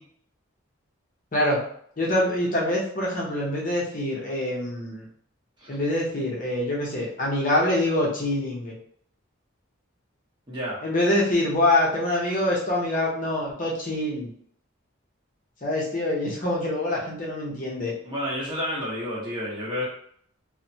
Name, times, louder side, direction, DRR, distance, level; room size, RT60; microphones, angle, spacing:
voice 1, 1.3-1.6 2.0-5.1 5.7-8.7 10.8-14.3 15.6-17.9, left 1 dB, 40° left, -4 dB, 0.7 m, -25 dB
voice 2, 10.5-10.8 18.0-19.8, equal, 20° right, -6 dB, 0.9 m, -30 dB
3.1 x 2.1 x 2.7 m, 0.62 s
head